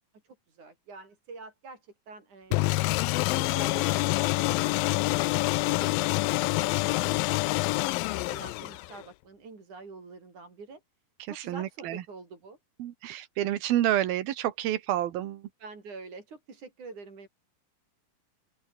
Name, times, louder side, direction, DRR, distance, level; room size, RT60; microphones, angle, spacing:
voice 1, 0.5-2.8 3.3-6.1 6.5-7.3 7.5-10.8 11.3-12.6 15.6-17.3, right 4 dB, 55° right, 6.9 m, -47 dB
sound 1, 2.5-9.0, left 22 dB, 80° left, 2.2 m, -26 dB
voice 2, 11.2-12.0 12.8-15.5, right 13 dB, 85° right, 3.3 m, -29 dB
open air
omnidirectional pair, 4.2 m